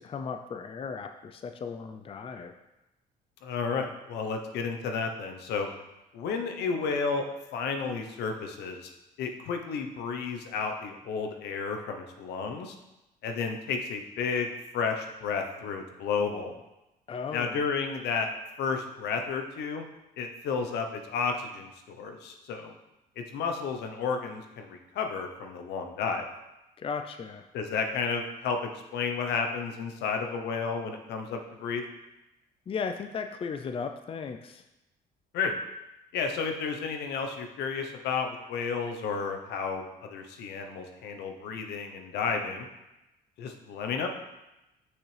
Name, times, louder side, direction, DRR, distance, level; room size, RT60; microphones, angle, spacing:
voice 1, 0.0-2.5 17.1-17.6 26.8-27.5 32.7-34.6, left 5 dB, 30° left, 7 dB, 0.5 m, -36 dB
voice 2, 3.4-5.7 6.1-7.2 7.5-8.9 9.2-12.8 13.2-16.6 17.3-18.3 18.6-19.8 20.2-22.7 23.2-26.2 27.5-31.8 35.3-35.5 36.1-42.7 43.4-44.1, left 5 dB, 80° left, 4 dB, 0.9 m, -32 dB
6.3 x 6.2 x 3.3 m, 0.96 s
cardioid pair, 90°, 17 cm